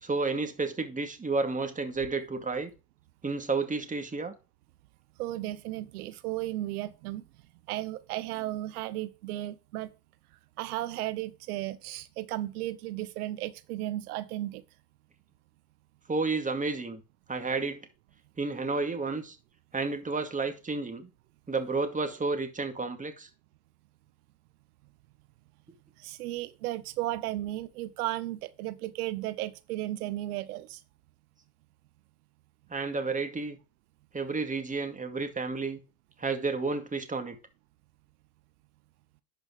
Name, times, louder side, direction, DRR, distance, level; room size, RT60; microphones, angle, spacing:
voice 1, 0.0-2.7 3.2-4.3 16.1-17.0 17.3-17.9 18.4-19.4 19.7-21.1 21.5-23.3 32.7-33.6 34.1-35.8 36.2-37.4, right 3 dB, 15° right, 2.3 m, -31 dB
voice 2, 5.2-7.2 7.7-9.9 10.6-14.6 26.0-30.8, right 15 dB, 85° right, 0.8 m, -34 dB
11.5 x 5.2 x 4.8 m
supercardioid pair, 85°, 43 cm